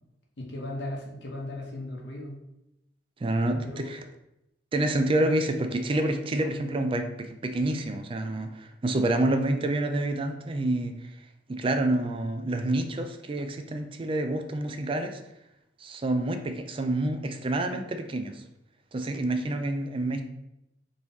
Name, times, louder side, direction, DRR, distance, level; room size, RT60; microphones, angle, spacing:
voice 1, 0.4-2.4 3.6-3.9, left 1 dB, 75° left, -1 dB, 1.0 m, -37 dB
voice 2, 3.2-4.0 4.7-11.0 11.5-15.2 15.8-18.4 18.9-20.2, right 1 dB, 30° right, 7 dB, 0.4 m, -28 dB
3.8 x 3.0 x 3.9 m, 0.87 s
head